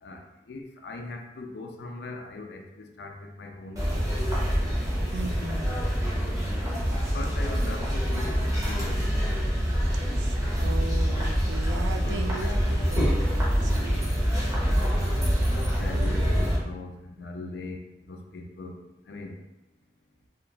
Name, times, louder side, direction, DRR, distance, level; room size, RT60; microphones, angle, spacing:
voice 1, 0.0-4.3 7.1-9.2 12.0-13.0 14.0-14.2 15.5-19.4, left 2 dB, 70° left, 3 dB, 0.4 m, -40 dB
sound 1, 3.8-16.6, equal, 20° right, 0.6 m, -25 dB
voice 2, 5.1-5.7 10.1-13.2 13.6-14.3, right 2 dB, 70° right, 4 dB, 0.3 m, -37 dB
2.8 x 2.3 x 2.3 m, 0.91 s
head